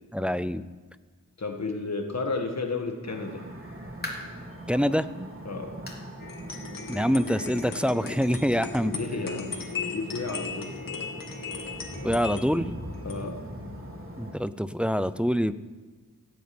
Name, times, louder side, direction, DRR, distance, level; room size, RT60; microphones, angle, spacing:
voice 1, 0.1-0.6 4.7-5.1 6.9-8.9 12.0-12.7 14.2-15.5, equal, 5° right, 13 dB, 0.6 m, -25 dB
voice 2, 1.4-3.4 5.5-5.7 8.8-9.6 9.9-10.8 13.0-13.4, left 3 dB, 50° left, 3 dB, 1.8 m, -32 dB
sound 1, 3.0-14.3, right 1 dB, 40° right, 3.2 m, -41 dB
sound 2, 4.0-4.5 5.0-5.1 5.9-6.1 6.4-6.5 7.1-7.2 8.2-8.3, left 1 dB, 30° left, 3.4 m, -39 dB
sound 3, 6.2-14.5, left 4 dB, 75° left, 2.4 m, -38 dB
17.0 x 9.5 x 8.7 m, 1.4 s
wide cardioid pair, 85°, 34 cm